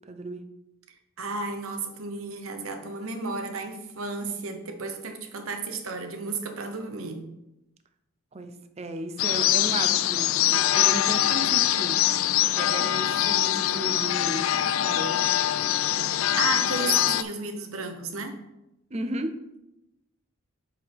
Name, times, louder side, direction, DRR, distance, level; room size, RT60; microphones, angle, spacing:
voice 1, 0.1-0.4 4.2-4.4 8.3-12.0 12.5-15.2 18.9-19.3, right 1 dB, 30° right, 9 dB, 0.6 m, -34 dB
voice 2, 1.2-7.2 16.4-18.4, right 3 dB, 90° right, 6 dB, 1.0 m, -33 dB
sound 1, 9.2-17.2, left 12 dB, 70° left, 0.3 m, -23 dB
8.1 x 4.8 x 3.5 m, 0.91 s
head